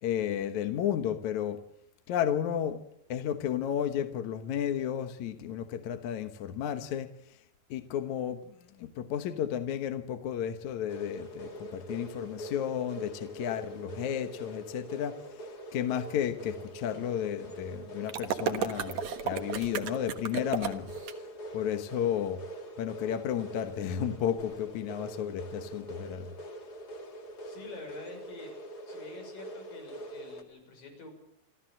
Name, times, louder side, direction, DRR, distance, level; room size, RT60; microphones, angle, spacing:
voice 1, 0.0-1.6 2.1-2.8 3.1-7.1 7.7-15.2 15.7-20.9 21.5-22.4 22.8-26.3, left 9 dB, 65° left, 2.4 m, -32 dB
sound 1, 10.9-30.4, right 1 dB, 35° left, 2.2 m, -44 dB
sound 2, 18.1-21.1, right 8 dB, 60° right, 2.3 m, -33 dB
voice 2, 27.4-28.5 28.9-31.1, left 2 dB, 85° left, 8.0 m, -47 dB
28.5 x 13.5 x 7.5 m
omnidirectional pair, 3.9 m